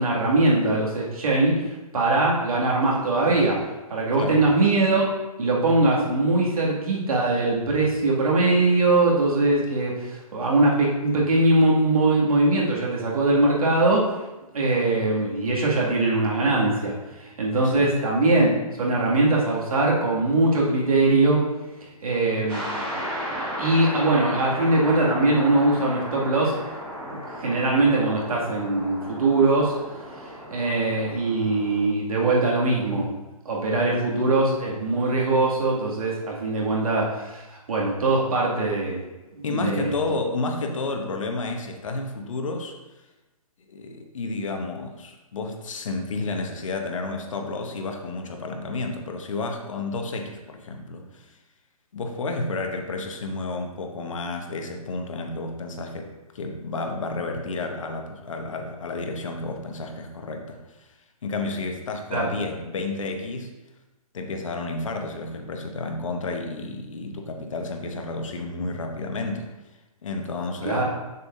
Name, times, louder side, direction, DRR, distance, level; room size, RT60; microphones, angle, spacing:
voice 1, 0.0-3.6 3.9-5.1 5.4-14.1 14.5-21.4 22.0-22.7 23.6-26.6 27.1-29.7 30.2-33.1 33.5-39.0 39.3-40.0 62.1-62.3 70.6-70.8, right 2 dB, 70° right, -4 dB, 2.3 m, -22 dB
voice 2, 4.1-4.4 17.5-17.9 39.4-42.7 43.7-51.4 51.9-60.9 61.2-63.5 64.1-69.5 70.0-70.8, left 3 dB, 55° left, 3 dB, 1.0 m, -31 dB
sound 1, 22.5-31.8, equal, 10° right, 2.0 m, -34 dB
6.9 x 6.8 x 2.7 m, 1.1 s
hypercardioid pair, 170°, 19 cm